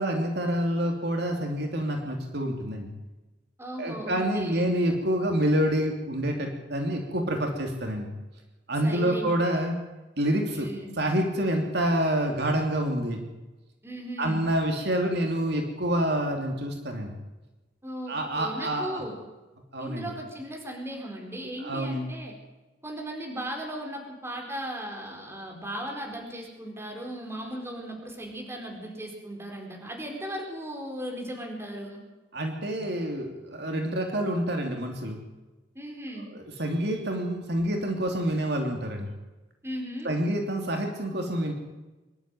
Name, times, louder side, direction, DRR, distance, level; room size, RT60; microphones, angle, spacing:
voice 1, 0.0-2.9 3.8-8.1 8.7-9.8 10.2-10.7 11.0-13.2 14.2-17.1 18.1-19.0 19.7-20.1 21.6-22.1 32.3-35.2 36.3-39.1 40.0-41.5, right 1 dB, 60° right, 3 dB, 3.0 m, -27 dB
voice 2, 3.6-4.7 8.8-9.3 10.5-11.0 13.8-14.4 17.8-19.2 19.8-22.4 22.8-32.0 35.7-36.3 39.6-40.1, right 1 dB, 15° right, 1 dB, 4.4 m, -37 dB
24.0 x 12.0 x 9.2 m, 1.1 s
head